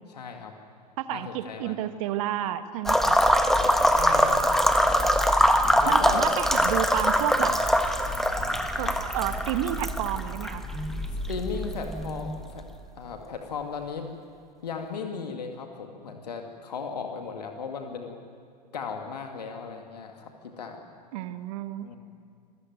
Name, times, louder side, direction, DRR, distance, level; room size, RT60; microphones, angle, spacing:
voice 1, 0.1-0.5 1.1-1.8 3.9-5.2 5.8-6.3 8.7-8.9 11.3-12.7 13.0-14.1 14.6-18.2 18.7-20.3 20.6-20.8 21.8-22.0, left 5 dB, 75° left, 4 dB, 2.2 m, -36 dB
voice 2, 1.0-3.2 5.9-7.6 8.8-8.9 9.1-10.6 21.1-21.9, right 12 dB, 55° right, 11 dB, 1.4 m, -30 dB
sound 1, 2.9-12.6, equal, ahead, 1.5 m, -23 dB
27.0 x 15.0 x 9.4 m, 2.3 s
figure-of-eight pair, 90°, 21 cm